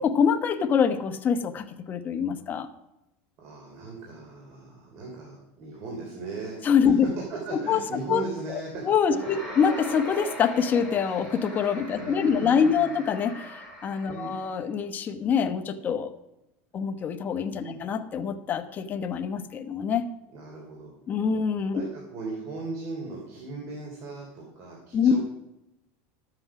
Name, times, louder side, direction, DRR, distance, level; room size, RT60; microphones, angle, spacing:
voice 1, 0.0-2.7 6.6-7.1 7.7-7.8 8.1-8.2 8.5-8.6 8.9-16.1 16.7-20.1 21.1-21.8 24.9-25.2, left 7 dB, 25° left, 6 dB, 1.0 m, -25 dB
voice 2, 3.4-7.0 7.3-8.8 9.1-9.5 11.9-13.0 14.1-14.3 17.6-17.8 20.3-20.9 21.7-25.2, right 3 dB, 45° right, -1 dB, 3.3 m, -38 dB
sound 1, 9.1-14.5, left 1 dB, 5° right, 4.6 m, -40 dB
12.0 x 7.9 x 6.0 m, 0.90 s
supercardioid pair, 145°, 7 cm